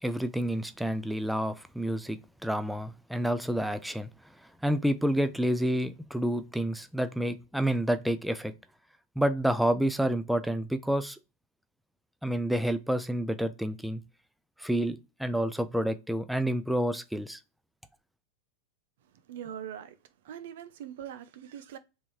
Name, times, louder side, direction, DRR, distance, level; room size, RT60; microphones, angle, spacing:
voice 1, 0.0-4.1 4.6-8.5 9.2-11.2 12.2-14.0 14.6-17.4, right 1 dB, ahead, 0.3 m, -29 dB
voice 2, 19.3-20.0 20.2-21.8, right 9 dB, 70° right, 0.6 m, -42 dB
3.5 x 2.6 x 3.0 m
hypercardioid pair, 115°, 0 cm